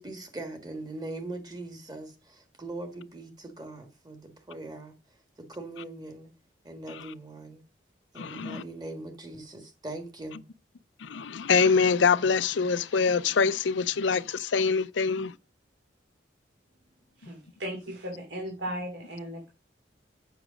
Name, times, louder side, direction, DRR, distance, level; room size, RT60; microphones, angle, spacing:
voice 1, 0.0-4.9 5.4-6.3 6.6-7.6 8.1-10.4, right 2 dB, 20° right, 1.5 m, -41 dB
voice 2, 8.2-8.6 11.0-15.3, left 5 dB, 75° left, 0.5 m, -24 dB
voice 3, 17.2-19.5, equal, 70° right, 2.8 m, -36 dB
8.0 x 5.9 x 5.0 m
head